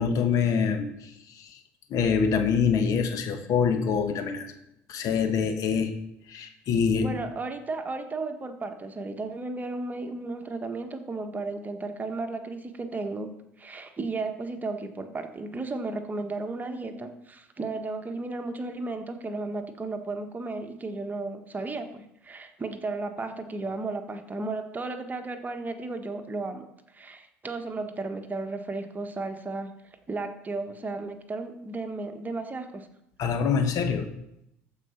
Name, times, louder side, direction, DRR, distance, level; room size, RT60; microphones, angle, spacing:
voice 1, 0.0-1.5 1.9-4.5 4.9-5.9 6.3-7.1 33.2-34.1, left 6 dB, 55° left, 7 dB, 1.4 m, -25 dB
voice 2, 7.0-13.3 13.6-26.7 26.9-32.9, right 3 dB, 25° right, 6 dB, 1.3 m, -34 dB
14.0 x 4.9 x 5.8 m, 0.81 s
hypercardioid pair, 70°, 7 cm